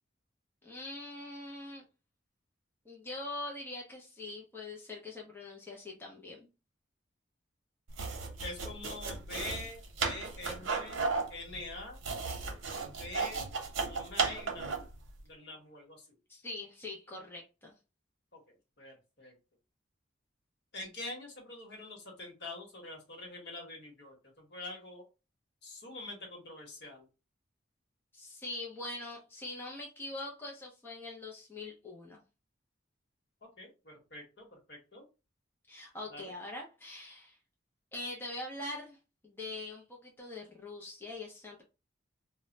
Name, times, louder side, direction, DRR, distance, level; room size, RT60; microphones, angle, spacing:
voice 1, 0.6-1.8 2.9-6.5 16.3-17.7 28.1-32.2 35.7-37.4 37.9-39.0 39.2-41.6, left 2 dB, 10° left, 0.5 m, -43 dB
sound 1, 7.9-14.9, right 4 dB, 85° right, 0.7 m, -35 dB
voice 2, 8.4-11.0 11.3-12.0 12.8-13.4 13.8-14.8 15.2-16.1 18.3-18.4 18.8-19.3 20.7-25.1 25.6-27.1 33.6-35.0 36.1-36.3, left 2 dB, 55° left, 1.1 m, -45 dB
2.1 x 2.1 x 3.8 m
head